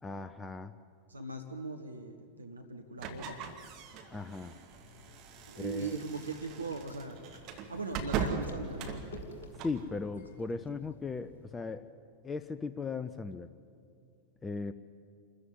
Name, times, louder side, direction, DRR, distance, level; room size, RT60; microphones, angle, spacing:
voice 1, 0.0-0.7 4.1-4.5 5.6-6.0 9.6-11.9 12.2-13.5 14.4-14.7, left 4 dB, 15° left, 12 dB, 0.7 m, -37 dB
voice 2, 1.1-3.4 5.5-7.2 7.7-9.0, right 3 dB, 80° right, 5 dB, 1.3 m, -40 dB
sound 1, 3.0-9.8, right 6 dB, 40° right, 2.4 m, -40 dB
sound 2, 4.8-11.5, left 4 dB, 60° left, 2.9 m, -54 dB
27.5 x 14.5 x 9.3 m, 2.4 s
figure-of-eight pair, 90°, 0 cm